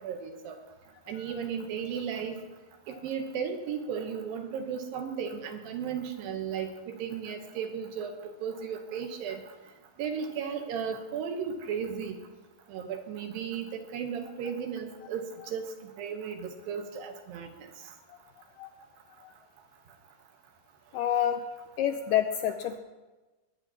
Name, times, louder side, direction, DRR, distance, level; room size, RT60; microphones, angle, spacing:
voice 1, 0.0-0.6 1.1-2.4 2.9-6.7 7.0-8.2 8.4-9.4 10.0-12.2 12.7-17.5, right 7 dB, 75° right, 5 dB, 2.7 m, -35 dB
voice 2, 20.9-21.4 21.8-22.8, left 10 dB, 85° left, 7 dB, 1.9 m, -28 dB
21.0 x 9.5 x 2.9 m, 1.2 s
omnidirectional pair, 4.3 m